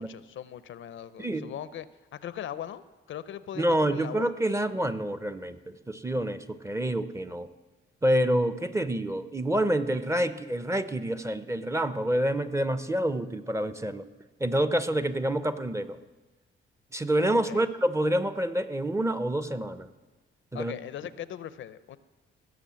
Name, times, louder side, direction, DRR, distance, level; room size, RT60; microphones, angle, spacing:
voice 1, 0.0-1.9 2.1-4.3 17.3-17.7 20.5-22.0, left 10 dB, 65° left, 15 dB, 0.6 m, -40 dB
voice 2, 1.2-1.5 3.6-5.6 5.9-7.5 8.0-14.1 14.4-16.0 16.9-19.9 20.5-20.7, right 1 dB, 15° right, 12 dB, 0.6 m, -27 dB
17.0 x 6.3 x 7.4 m, 1.2 s
cardioid pair, 105°, 21 cm